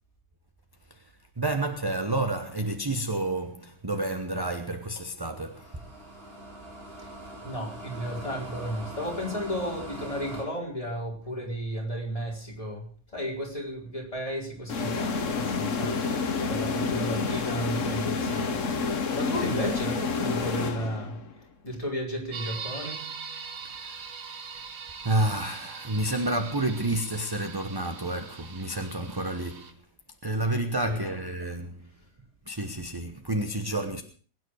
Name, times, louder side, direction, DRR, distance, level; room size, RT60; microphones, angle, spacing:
voice 1, 0.9-5.9 23.6-24.0 25.0-29.9 30.2-31.9 32.5-34.0, right 2 dB, 20° right, 1.0 m, -30 dB
sound 1, 5.3-10.4, right 1 dB, 40° right, 5.0 m, -42 dB
voice 2, 7.4-23.0 30.8-31.2, equal, 25° left, 4.8 m, -34 dB
sound 2, 14.7-21.3, left 4 dB, 60° left, 1.6 m, -29 dB
sound 3, 22.3-29.7, right 5 dB, 70° right, 1.9 m, -41 dB
21.0 x 9.7 x 6.4 m
omnidirectional pair, 1.5 m